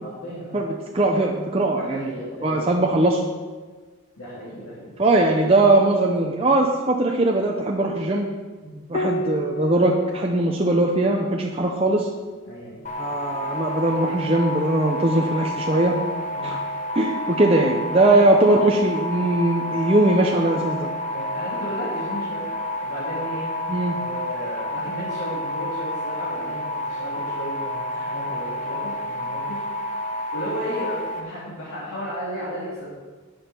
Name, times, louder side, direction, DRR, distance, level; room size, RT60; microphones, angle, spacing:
voice 1, 0.0-0.5 1.7-2.7 4.2-5.0 8.6-8.7 12.4-12.7 16.3-16.5 18.0-18.2 21.1-22.5 22.8-23.4 23.9-29.6 30.3-32.9, equal, 85° left, -10 dB, 3.4 m, -34 dB
voice 2, 0.5-2.1 2.4-3.2 5.0-8.3 8.9-12.1 13.0-16.0 16.4-16.6 16.9-20.9 23.7-24.0, right 2 dB, 25° right, 0 dB, 0.7 m, -20 dB
Piano, 8.9-13.8 15.4-16.2, equal, 55° left, 0.4 m, -35 dB
sound 1, 12.8-31.2, left 1 dB, 35° left, 1.2 m, -29 dB
12.0 x 8.6 x 4.5 m, 1.4 s
head